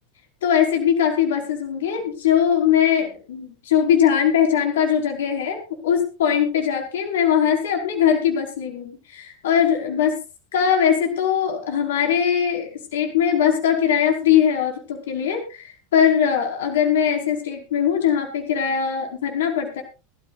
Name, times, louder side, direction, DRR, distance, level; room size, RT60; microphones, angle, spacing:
voice 1, 0.4-10.2 10.5-19.8, left 8 dB, 90° left, 2 dB, 4.9 m, -21 dB
21.5 x 14.0 x 2.5 m, 0.33 s
supercardioid pair, 135°, 0 cm